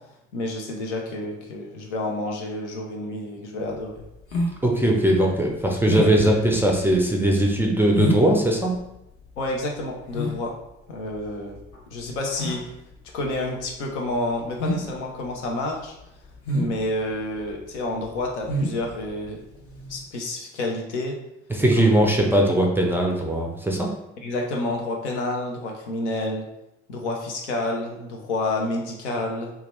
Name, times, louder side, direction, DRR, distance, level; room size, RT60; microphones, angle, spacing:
voice 1, 0.3-4.0 9.4-10.6 10.9-11.6 11.9-12.6 13.1-15.9 16.5-19.4 19.9-21.2 21.8-21.9 24.2-26.5 26.9-29.5, left 2 dB, 75° left, 1 dB, 0.6 m, -29 dB
sound 1, 3.7-20.0, equal, 40° left, 0.8 m, -31 dB
voice 2, 4.6-8.8 21.5-23.9, right 1 dB, 5° right, 0 dB, 0.4 m, -20 dB
2.8 x 2.2 x 3.1 m, 0.85 s
figure-of-eight pair, 50°, 35 cm